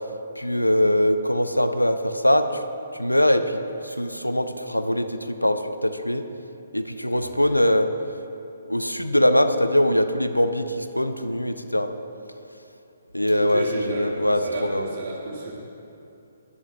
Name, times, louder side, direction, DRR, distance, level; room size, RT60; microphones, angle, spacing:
voice 1, 0.4-2.6 2.9-6.3 6.7-7.9 8.7-11.9 13.1-14.8, left 1 dB, 90° left, 9 dB, 0.5 m, -22 dB
voice 2, 7.1-7.6 13.3-15.5, right 2 dB, 45° right, -4 dB, 2.1 m, -33 dB
12.5 x 10.5 x 2.4 m, 2.7 s
figure-of-eight pair, 130°, 0 cm